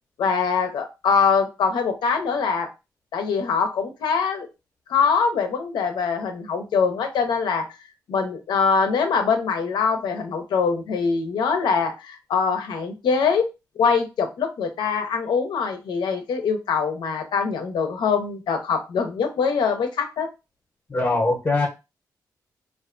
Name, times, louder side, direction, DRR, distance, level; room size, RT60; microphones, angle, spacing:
voice 1, 0.2-2.7 3.1-4.5 4.9-7.6 8.1-13.4 13.8-20.3, left 5 dB, 85° left, 5 dB, 0.5 m, -23 dB
voice 2, 20.9-21.7, left 2 dB, 30° left, 1 dB, 0.8 m, -21 dB
2.4 x 2.2 x 2.4 m, 0.27 s
cardioid pair, 65°, 7 cm